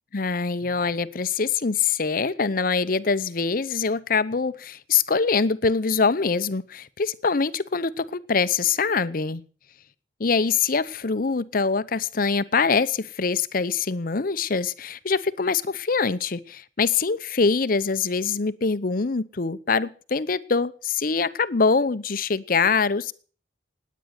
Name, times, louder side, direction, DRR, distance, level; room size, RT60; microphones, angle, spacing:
voice 1, 0.1-9.4 10.2-23.1, left 5 dB, 50° left, 16 dB, 0.7 m, -24 dB
19.0 x 9.4 x 6.6 m, 0.41 s
head